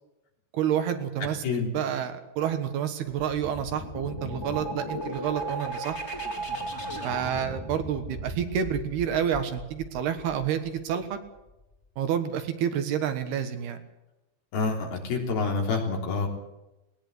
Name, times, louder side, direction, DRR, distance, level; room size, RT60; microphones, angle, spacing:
voice 1, 0.5-1.4 1.7-6.0 7.0-11.2 12.0-13.8, right 9 dB, 70° right, 8 dB, 3.2 m, -29 dB
sound 1, 3.2-10.7, right 1 dB, 15° left, 3.1 m, -36 dB
voice 2, 14.5-16.3, left 4 dB, 60° left, 1 dB, 5.3 m, -27 dB
19.5 x 19.0 x 8.0 m, 0.97 s
omnidirectional pair, 5.0 m